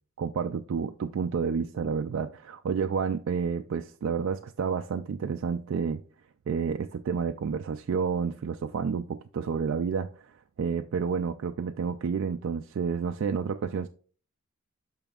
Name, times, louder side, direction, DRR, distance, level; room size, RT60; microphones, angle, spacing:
voice 1, 0.2-6.0 6.5-13.9, right 6 dB, 60° right, 6 dB, 0.3 m, -30 dB
8.8 x 5.9 x 2.4 m, 0.41 s
head